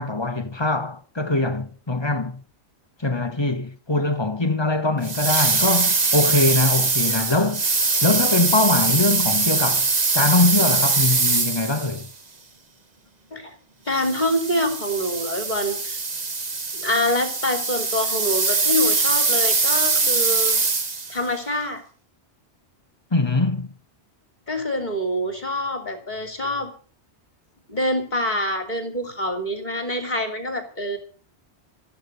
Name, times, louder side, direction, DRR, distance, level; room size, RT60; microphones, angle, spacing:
voice 1, 0.0-2.4 3.0-7.6 8.0-9.9 10.1-12.1 23.1-23.7, left 2 dB, 25° left, 1.2 m, -22 dB
sound 1, 5.0-12.1 13.9-21.2, right 3 dB, 40° right, 1.5 m, -22 dB
voice 2, 13.9-16.0 16.7-20.6 21.1-21.8 24.5-26.7 27.7-31.0, left 1 dB, 40° left, 3.1 m, -25 dB
14.0 x 11.0 x 6.7 m
omnidirectional pair, 1.1 m